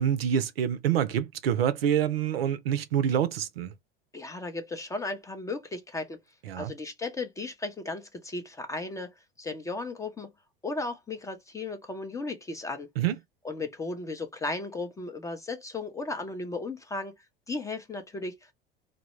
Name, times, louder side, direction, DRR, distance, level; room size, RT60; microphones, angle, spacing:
voice 1, 0.0-3.7 6.5-6.7 13.0-13.1, right 9 dB, 75° right, 0.5 m, -26 dB
voice 2, 4.1-6.2 6.6-9.1 9.4-10.3 10.6-12.9 13.4-17.1 17.5-18.5, left 3 dB, 10° left, 0.3 m, -35 dB
2.1 x 2.0 x 2.9 m
figure-of-eight pair, 75°, 30 cm